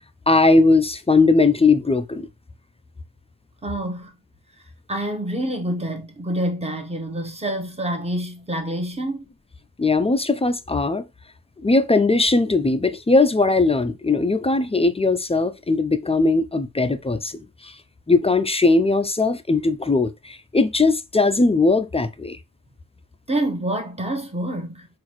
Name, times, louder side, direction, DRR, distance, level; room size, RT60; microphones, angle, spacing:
voice 1, 0.3-2.3 9.8-11.1 11.6-17.8 18.1-22.4, left 3 dB, 15° left, 0.3 m, -19 dB
voice 2, 3.6-4.1 4.9-9.2 23.3-24.9, right 1 dB, 15° right, 0.9 m, -27 dB
3.9 x 2.5 x 3.0 m
wide cardioid pair, 60°, 38 cm